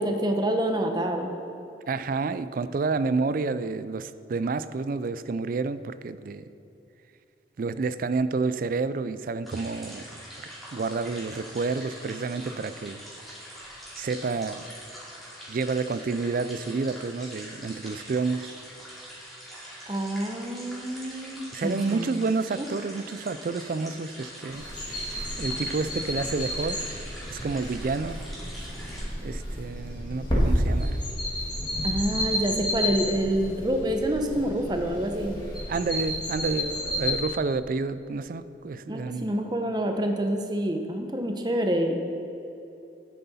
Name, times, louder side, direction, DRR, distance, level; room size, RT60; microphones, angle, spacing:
voice 1, 0.0-1.3 19.9-22.1 22.6-22.7 31.8-35.4 38.9-42.0, right 1 dB, 20° right, 4 dB, 0.7 m, -27 dB
voice 2, 1.9-6.5 7.6-10.1 10.7-13.0 13.9-14.6 15.5-18.5 21.5-24.6 25.4-26.9 27.3-28.2 29.2-31.0 35.7-39.4, right 4 dB, 50° right, 14 dB, 0.3 m, -29 dB
sound 1, 9.4-29.0, equal, ahead, 2.5 m, -44 dB
sound 2, 24.5-37.2, equal, 25° left, 1.8 m, -31 dB
9.5 x 9.3 x 4.1 m, 2.8 s
head